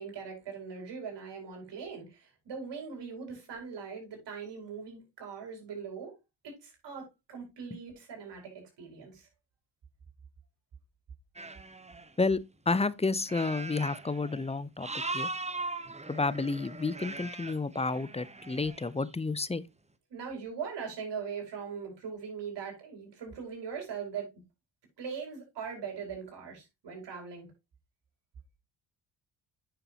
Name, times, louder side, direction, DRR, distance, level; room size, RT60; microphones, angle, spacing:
voice 1, 0.0-6.1 6.4-9.3 20.1-24.3 25.0-27.5, right 6 dB, 65° right, 5.4 m, -41 dB
sound 1, 11.4-12.1 13.3-14.6 14.8-18.9, right 3 dB, 15° right, 1.1 m, -40 dB
voice 2, 12.7-14.9 15.1-15.3 16.1-19.6, left 3 dB, 15° left, 0.7 m, -30 dB
9.2 x 6.8 x 2.9 m
supercardioid pair, 60°, 45 cm